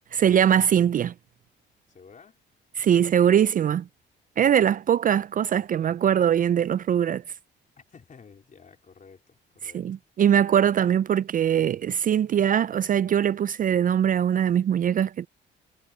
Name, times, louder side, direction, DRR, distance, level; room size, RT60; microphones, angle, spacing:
voice 1, 0.1-1.1 2.8-3.9 4.4-7.2 9.7-15.3, right 9 dB, 45° right, 0.4 m, -22 dB
voice 2, 1.9-2.4 7.8-9.9, left 5 dB, 40° left, 4.0 m, -52 dB
cardioid pair, 90°, 20 cm